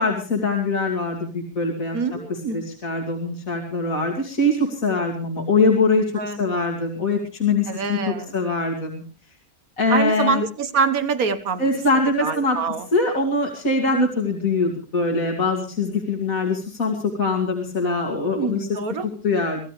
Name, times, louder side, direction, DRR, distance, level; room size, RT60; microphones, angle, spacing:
voice 1, 0.0-2.0 2.3-6.1 6.4-9.0 9.8-10.4 11.6-12.6 12.9-18.7 19.2-19.6, left 3 dB, 60° left, 0 dB, 2.9 m, -23 dB
voice 2, 1.9-2.6 6.2-6.4 7.7-8.4 9.9-11.6 12.2-12.8 13.9-14.1 18.1-19.1, right 5 dB, 65° right, 11 dB, 1.9 m, -25 dB
25.0 x 15.5 x 3.3 m, 0.35 s
omnidirectional pair, 1.6 m